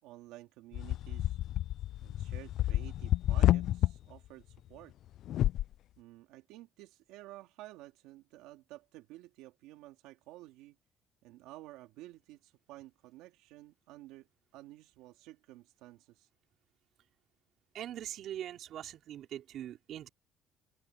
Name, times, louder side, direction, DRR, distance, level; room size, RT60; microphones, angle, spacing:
voice 1, 0.0-1.4 2.0-4.9 6.0-10.8 11.2-14.3 14.5-16.3, right 17 dB, 90° right, 3.1 m, -52 dB
sound 1, 0.7-3.9 5.3-5.6, left 13 dB, 65° left, 0.5 m, -29 dB
voice 2, 17.7-20.1, right 11 dB, 60° right, 4.4 m, -42 dB
open air
cardioid pair, 110°, 0 cm